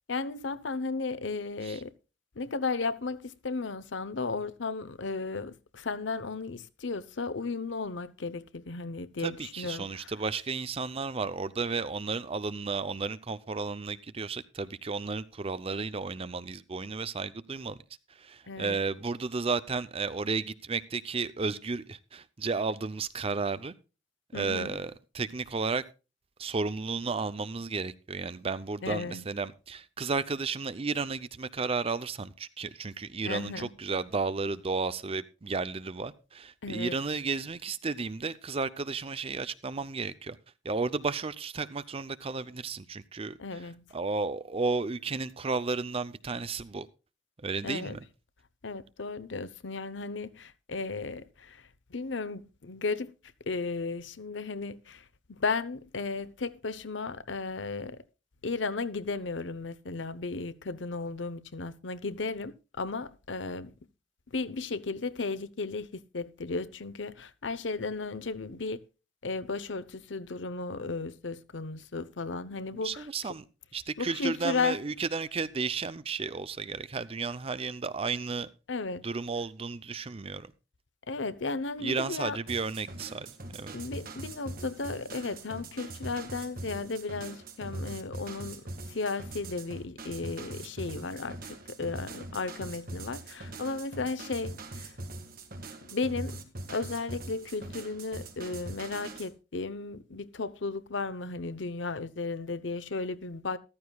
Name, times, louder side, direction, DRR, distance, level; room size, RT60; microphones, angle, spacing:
voice 1, 0.1-1.9 2.4-10.2 18.5-18.9 24.3-24.8 28.8-29.2 33.2-33.7 36.6-37.1 43.4-43.8 47.6-48.0 48.6-53.1 53.5-58.0 58.4-63.7 64.3-68.8 69.2-73.4 74.0-74.9 78.7-79.1 81.1-82.4 83.7-94.9 95.8-96.4 96.7-103.6, left 3 dB, 80° left, 0.9 m, -35 dB
voice 2, 9.2-17.8 18.2-23.7 24.3-25.8 26.4-40.4 40.6-43.4 43.9-46.9 47.4-48.0 72.8-73.4 73.7-78.5 79.0-80.5 81.8-83.7, right 4 dB, 30° right, 0.6 m, -33 dB
sound 1, 82.5-99.3, right 2 dB, 50° right, 1.8 m, -42 dB
14.0 x 13.0 x 2.3 m
head